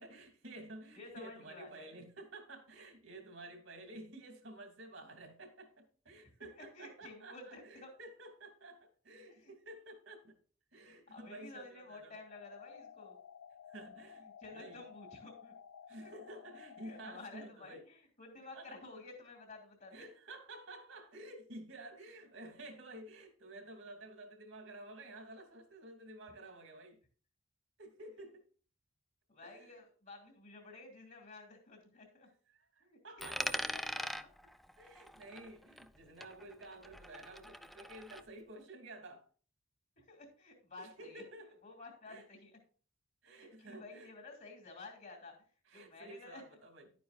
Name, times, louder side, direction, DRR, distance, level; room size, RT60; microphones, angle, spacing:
voice 1, 0.0-10.4 10.7-12.2 13.7-14.8 15.9-17.8 18.5-18.8 19.9-27.0 27.8-28.4 29.4-29.8 32.5-33.6 34.8-39.2 40.8-41.6 42.1-42.3 43.2-44.1 45.7-46.9, right 1 dB, 70° right, 2.7 m, -52 dB
voice 2, 0.9-1.9 6.5-7.9 9.3-9.5 11.1-13.1 14.4-15.5 16.0-16.1 16.8-19.9 29.3-32.3 32.8-34.3 40.0-41.2 41.6-42.5 43.3-45.3 45.7-46.4, left 3 dB, 45° left, 2.7 m, -52 dB
sound 1, 12.2-17.2, left 7 dB, 90° left, 0.5 m, -54 dB
Coin (dropping), 33.2-36.0 36.2-38.2, equal, ahead, 0.4 m, -42 dB
11.5 x 9.3 x 2.5 m
head